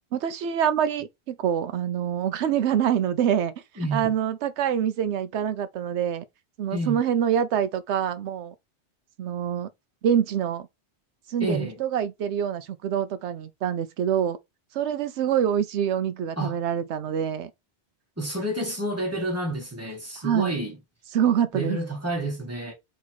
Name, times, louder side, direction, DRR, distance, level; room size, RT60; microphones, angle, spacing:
voice 1, 0.1-3.5 3.9-6.2 6.6-8.5 9.2-9.7 10.0-10.7 11.3-14.4 14.7-17.5 20.2-20.5 21.1-21.8, right 9 dB, 85° right, 0.9 m, -25 dB
voice 2, 3.8-4.1 6.7-7.0 11.4-11.8 16.4-16.6 18.2-20.8 21.5-22.7, right 1 dB, 15° right, 1.5 m, -29 dB
3.9 x 3.0 x 4.4 m
omnidirectional pair, 1.1 m